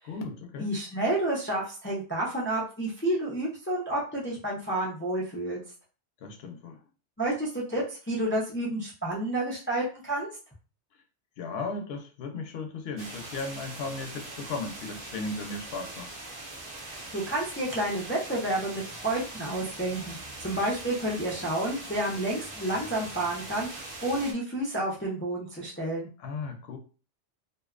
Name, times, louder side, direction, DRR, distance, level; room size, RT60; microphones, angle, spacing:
voice 1, 0.0-0.7 6.2-6.8 11.4-16.1 26.2-26.8, left 3 dB, 65° left, 4 dB, 0.8 m, -36 dB
voice 2, 0.6-5.6 7.2-10.3 16.8-26.1, right 1 dB, 20° left, -4 dB, 0.3 m, -30 dB
sound 1, 13.0-24.3, right 2 dB, 35° right, 0.5 m, -42 dB
2.5 x 2.1 x 2.4 m, 0.36 s
omnidirectional pair, 1.2 m